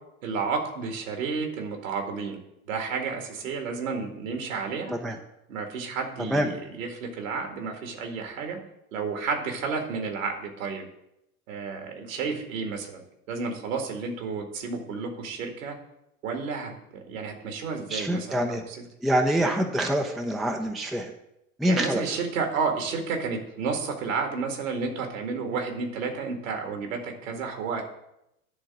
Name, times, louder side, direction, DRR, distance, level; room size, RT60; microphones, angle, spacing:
voice 1, 0.2-2.4 2.7-5.0 5.5-6.5 6.8-8.6 8.9-10.8 11.5-13.0 13.3-15.8 16.2-16.7 17.1-18.8 21.6-27.8, right 5 dB, 60° right, 3 dB, 2.0 m, -31 dB
voice 2, 6.2-6.5 17.9-18.6 19.0-21.1 21.6-22.0, right 1 dB, ahead, 5 dB, 0.5 m, -25 dB
10.5 x 3.7 x 7.5 m, 0.84 s
figure-of-eight pair, 85°, 43 cm